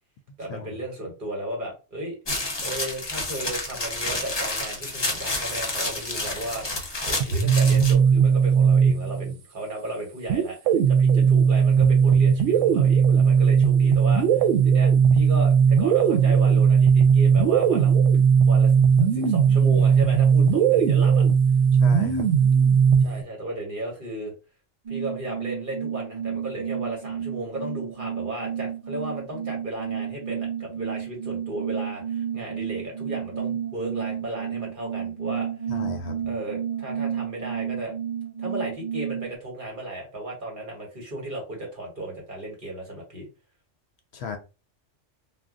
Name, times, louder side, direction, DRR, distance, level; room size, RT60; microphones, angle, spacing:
voice 1, 0.4-2.2 2.6-6.7 7.0-18.0 18.4-18.7 19.0-21.2 23.0-24.3 24.9-35.5 36.3-37.9 38.4-43.3, right 1 dB, 45° right, 1.3 m, -35 dB
sound 1, 2.3-7.9, left 2 dB, 25° left, 0.7 m, -30 dB
sound 2, 7.2-9.3 10.3-23.2, right 7 dB, 85° right, 0.9 m, -18 dB
voice 2, 21.8-22.3 35.7-36.3 44.1-44.4, left 5 dB, 70° left, 0.8 m, -35 dB
sound 3, 24.9-39.4, right 9 dB, 60° right, 0.4 m, -31 dB
2.4 x 2.2 x 3.6 m
omnidirectional pair, 1.2 m